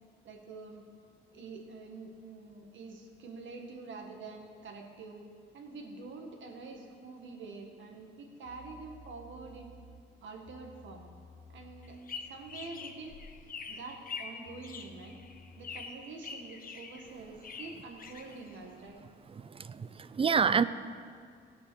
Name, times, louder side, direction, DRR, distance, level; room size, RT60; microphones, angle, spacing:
voice 1, 0.2-0.9 1.3-5.3 5.5-9.7 10.2-11.1 11.5-13.2 13.7-15.2 15.6-19.0, right 3 dB, 70° right, 2 dB, 1.9 m, -46 dB
sound 1, 8.4-16.0, left 1 dB, 80° left, 1.8 m, -56 dB
sound 2, 11.8-18.9, left 5 dB, 45° left, 1.2 m, -45 dB
voice 2, 19.4-20.6, right 6 dB, 30° right, 14 dB, 0.5 m, -28 dB
17.0 x 6.2 x 6.4 m, 2.2 s
cardioid pair, 90°, 20 cm